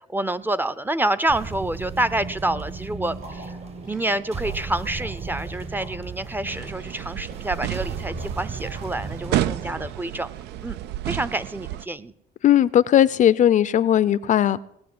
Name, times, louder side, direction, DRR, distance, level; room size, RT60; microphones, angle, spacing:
voice 1, 0.1-3.5 3.9-10.3 10.6-10.8 11.0-12.1, right 1 dB, 10° right, 15 dB, 0.6 m, -27 dB
sound 1, 1.3-9.9, right 4 dB, 40° right, 1.2 m, -35 dB
Water / Liquid, 3.1-9.9, right 3 dB, 60° right, 7.3 m, -45 dB
sound 2, 6.5-11.9, right 13 dB, 80° right, 0.6 m, -31 dB
voice 2, 12.4-14.6, left 11 dB, 50° left, 18 dB, 0.5 m, -18 dB
18.5 x 6.6 x 9.4 m, 0.75 s
cardioid pair, 110°, 17 cm